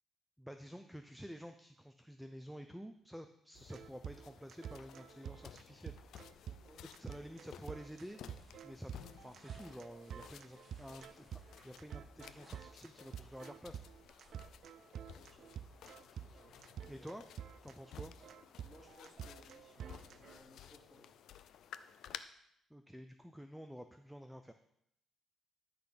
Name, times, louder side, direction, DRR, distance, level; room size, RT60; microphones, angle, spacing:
voice 1, 0.4-6.0 7.0-8.2 8.6-8.9 9.2-13.8 16.9-17.2 17.6-18.1 22.7-24.5, equal, ahead, 7 dB, 0.5 m, -50 dB
sound 1, 3.6-22.2, left 10 dB, 75° left, 0.4 m, -56 dB
sound 2, 3.6-20.4, right 9 dB, 65° right, 0.4 m, -49 dB
sound 3, 6.0-20.4, right 2 dB, 35° right, 3.2 m, -67 dB
voice 2, 6.4-7.2 15.1-15.5 15.9-17.1 18.6-19.8 20.0-21.1, left 1 dB, 15° left, -1 dB, 2.4 m, -63 dB
12.0 x 4.1 x 5.9 m, 0.77 s
cardioid pair, 100°, 0 cm